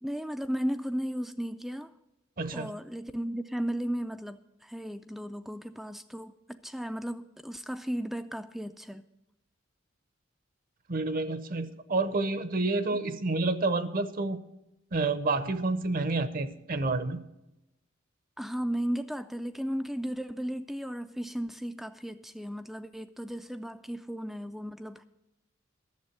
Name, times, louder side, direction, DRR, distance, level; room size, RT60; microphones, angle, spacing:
voice 1, 0.0-1.9 2.5-9.0 18.4-25.0, equal, ahead, 9 dB, 0.3 m, -35 dB
voice 2, 2.4-2.7 10.9-14.4 14.9-17.2, right 3 dB, 45° right, 13 dB, 0.7 m, -29 dB
11.5 x 7.3 x 7.8 m, 0.90 s
head